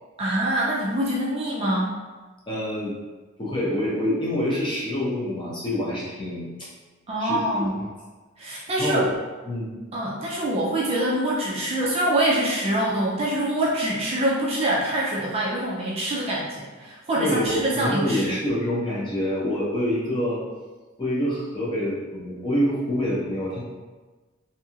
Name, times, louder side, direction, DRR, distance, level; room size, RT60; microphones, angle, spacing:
voice 1, 0.2-2.0 7.1-7.8 8.4-9.0 9.9-18.4, right 1 dB, 25° right, -5 dB, 0.4 m, -25 dB
voice 2, 2.5-3.0 3.4-6.5 7.2-7.7 8.8-9.1 9.4-9.7 17.2-20.4 21.0-23.6, equal, 20° left, -7 dB, 0.7 m, -26 dB
2.9 x 2.7 x 2.4 m, 1.3 s
head